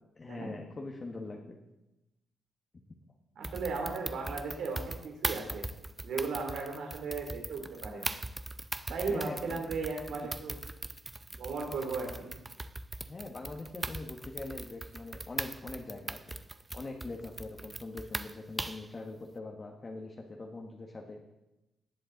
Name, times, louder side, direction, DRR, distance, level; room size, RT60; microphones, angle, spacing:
voice 1, 0.2-1.6 9.1-9.6 10.2-10.3 13.1-16.4 16.7-21.2, left 2 dB, 30° left, 1 dB, 1.3 m, -42 dB
sound 1, 3.4-18.9, right 2 dB, 15° right, 0.5 m, -40 dB
voice 2, 3.4-5.6 6.0-8.1 8.9-10.6 11.4-12.3, right 4 dB, 70° right, 2 dB, 3.0 m, -36 dB
18.0 x 7.7 x 3.9 m, 0.97 s
cardioid pair, 90°, 0 cm